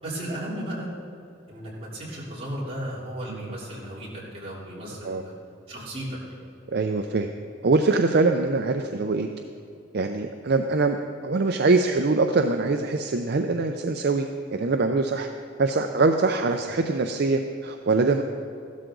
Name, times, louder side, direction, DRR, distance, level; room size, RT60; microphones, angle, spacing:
voice 1, 0.0-0.9 1.5-5.3 5.7-6.2, right 1 dB, 30° right, -7 dB, 3.4 m, -35 dB
voice 2, 6.7-7.3 7.6-9.3 9.9-11.0 11.2-15.3 15.6-18.2, right 3 dB, 50° right, 5 dB, 0.5 m, -23 dB
14.5 x 12.5 x 3.9 m, 2.6 s
head